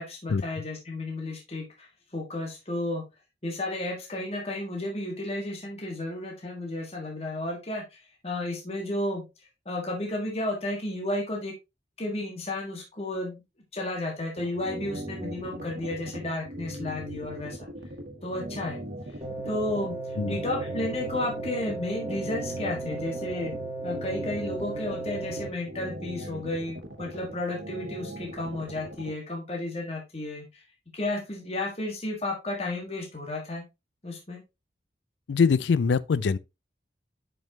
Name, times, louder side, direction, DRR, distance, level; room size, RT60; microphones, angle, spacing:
voice 1, 0.0-3.0 3.4-9.2 9.6-11.5 12.0-13.4 13.7-17.7 18.2-18.9 19.5-20.0 20.2-23.5 23.8-30.6 30.9-33.6 34.0-34.4, left 1 dB, 35° left, 1.6 m, -33 dB
sound 1, 14.4-29.1, right 1 dB, 65° right, 1.4 m, -39 dB
sound 2, 19.2-25.5, right 2 dB, 20° right, 2.0 m, -36 dB
voice 2, 35.3-36.4, left 5 dB, 80° left, 0.4 m, -23 dB
7.4 x 5.3 x 2.8 m
head